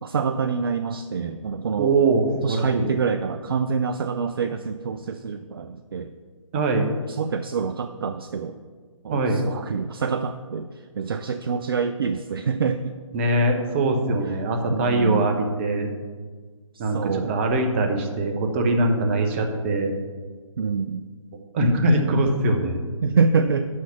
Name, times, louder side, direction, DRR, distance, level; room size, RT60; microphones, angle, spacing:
voice 1, 0.0-1.9 2.4-6.1 7.1-8.6 9.0-10.7 11.0-12.9 14.7-15.3 16.7-17.3 20.6-21.0 23.0-23.7, right 5 dB, 45° right, 9 dB, 0.4 m, -26 dB
voice 2, 1.8-2.9 6.5-6.9 9.1-9.5 13.1-15.9 16.8-19.9 21.5-22.9, right 2 dB, 20° right, 4 dB, 0.8 m, -22 dB
6.4 x 5.7 x 7.0 m, 1.5 s
figure-of-eight pair, 145°, 17 cm